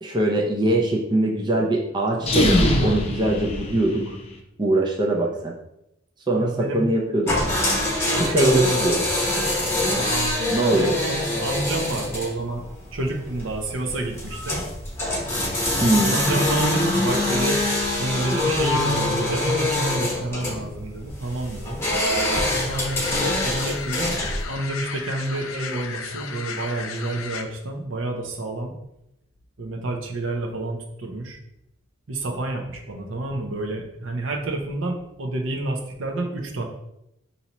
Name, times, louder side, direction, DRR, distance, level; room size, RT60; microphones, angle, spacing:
voice 1, 0.0-4.1 4.6-5.6 6.3-7.4 8.1-9.0 10.5-10.9 15.8-16.2, right 1 dB, 20° right, -1 dB, 0.4 m, -22 dB
sound 1, 2.2-4.3, left 1 dB, 30° left, 0.6 m, -23 dB
voice 2, 6.3-6.9 8.2-9.2 9.9-12.6 12.9-14.6 16.1-17.6 17.9-21.8 22.7-24.2 24.5-28.7 29.6-31.4 32.1-36.6, right 2 dB, 65° right, 2 dB, 0.7 m, -29 dB
sound 2, 7.3-24.4, left 1 dB, 10° left, 0.9 m, -25 dB
sound 3, 21.9-27.4, left 5 dB, 75° left, 0.5 m, -34 dB
5.4 x 2.8 x 2.9 m, 0.83 s
head